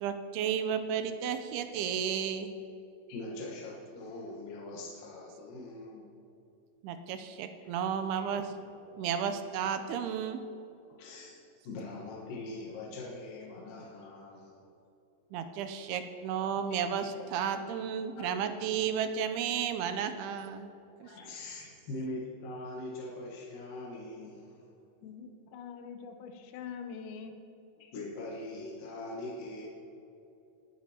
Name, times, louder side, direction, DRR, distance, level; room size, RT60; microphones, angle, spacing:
voice 1, 0.0-2.5 6.8-8.5 9.0-10.4 15.3-20.7 21.0-21.1, right 8 dB, 85° right, 8 dB, 2.6 m, -33 dB
voice 2, 3.1-6.1 8.2-8.3 9.0-9.2 10.0-10.1 11.0-14.5 16.7-16.8 18.2-18.3 18.6-18.7 21.0-24.7 27.8-29.7, left 2 dB, 65° left, -3 dB, 2.7 m, -42 dB
voice 3, 25.0-27.3, left 6 dB, 85° left, 6 dB, 1.7 m, -44 dB
19.5 x 10.5 x 2.9 m, 2.8 s
omnidirectional pair, 4.6 m